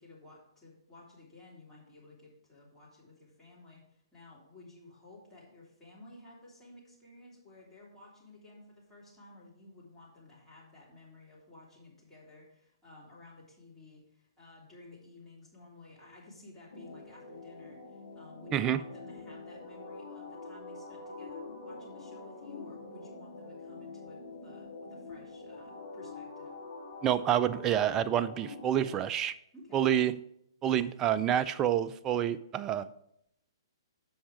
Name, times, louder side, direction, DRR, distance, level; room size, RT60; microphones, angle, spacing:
voice 1, 0.0-26.5 29.5-29.9, left 2 dB, 10° left, -7 dB, 3.1 m, -54 dB
sound 1, 16.7-28.9, left 3 dB, 70° left, 3.3 m, -45 dB
voice 2, 27.0-29.3 29.7-30.2 30.6-32.9, right 10 dB, 20° right, 14 dB, 0.3 m, -28 dB
7.8 x 5.7 x 4.9 m, 0.75 s
figure-of-eight pair, 120°, 3 cm